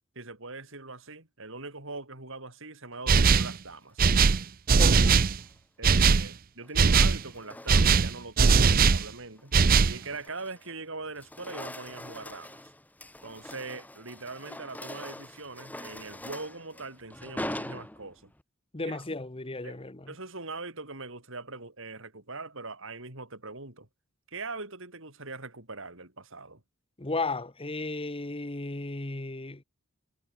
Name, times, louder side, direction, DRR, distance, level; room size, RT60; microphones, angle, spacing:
voice 1, 0.2-4.1 4.9-5.1 5.8-9.5 9.8-12.6 13.2-18.3 18.8-19.0 19.6-19.8 20.1-23.9 24.3-26.6, right 3 dB, 65° right, 7.0 m, -41 dB
sound 1, 3.1-3.6 4.0-5.4 5.8-6.3 6.8-7.2 7.7-9.1 9.5-10.0, right 5 dB, 45° right, 0.6 m, -20 dB
voice 2, 4.8-5.1 18.7-20.1 27.0-29.6, left 3 dB, 25° left, 1.3 m, -34 dB
sound 2, 5.2-5.5 6.6-8.2 8.6-8.9 9.4-10.8 11.1-18.4, left 1 dB, 10° left, 1.9 m, -43 dB
head